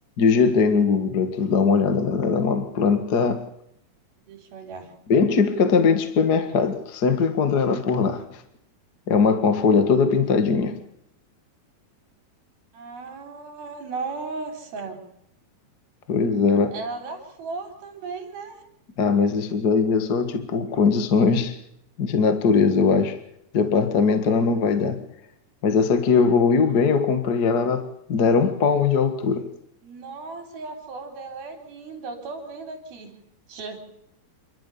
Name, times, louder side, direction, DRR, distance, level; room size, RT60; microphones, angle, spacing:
voice 1, 0.2-3.4 5.1-8.2 9.1-10.8 16.1-16.7 19.0-21.6 22.0-23.2 23.5-25.0 25.6-29.5, left 5 dB, 40° left, 1.5 m, -20 dB
voice 2, 4.3-4.9 12.7-15.0 16.7-18.6 29.8-33.2 33.5-33.8, right 4 dB, 90° right, 5.7 m, -36 dB
29.5 x 12.5 x 7.1 m
omnidirectional pair, 4.2 m